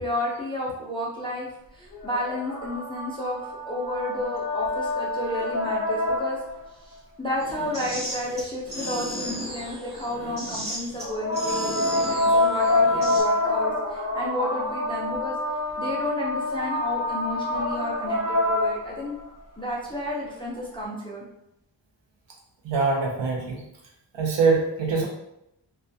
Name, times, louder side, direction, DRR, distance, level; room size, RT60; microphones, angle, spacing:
voice 1, 0.0-3.4 3.6-6.4 6.8-15.4 15.8-19.1 19.6-21.2, left 1 dB, 15° left, -5 dB, 0.3 m, -31 dB
sound 1, 1.9-6.7 11.0-19.2 20.6-20.7, left 2 dB, 30° left, 0.7 m, -26 dB
s game drum, 7.4-13.2, equal, 20° right, 0.8 m, -35 dB
voice 2, 22.6-23.6 24.1-25.1, right 4 dB, 70° right, 0 dB, 0.7 m, -23 dB
2.2 x 2.2 x 2.5 m, 0.81 s
wide cardioid pair, 170°, 45 cm